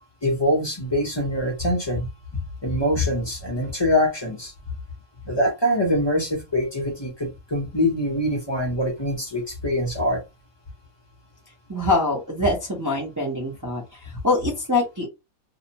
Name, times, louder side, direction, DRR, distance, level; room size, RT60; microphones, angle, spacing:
voice 1, 0.2-2.1 2.6-4.5 5.2-10.2, left 1 dB, 25° left, 0.6 m, -24 dB
voice 2, 11.7-15.1, left 2 dB, 20° right, 0.5 m, -24 dB
2.7 x 2.1 x 2.7 m
omnidirectional pair, 1.5 m